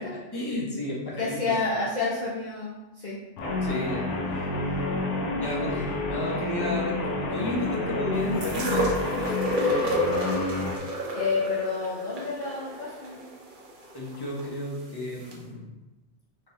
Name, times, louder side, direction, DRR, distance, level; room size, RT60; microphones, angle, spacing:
voice 1, 0.0-1.5 3.5-4.1 5.4-7.0 7.3-8.9 13.9-15.7, left 1 dB, 20° left, -5 dB, 1.0 m, -32 dB
voice 2, 1.2-3.2 11.1-13.2, left 3 dB, 45° left, -6 dB, 0.8 m, -29 dB
Guitar, 3.4-10.8, left 2 dB, 85° left, 1.0 m, -29 dB
sound 1, 8.4-14.5 15.3-15.4, equal, 50° right, 0.8 m, -30 dB
3.5 x 2.9 x 4.1 m, 1.0 s
omnidirectional pair, 1.2 m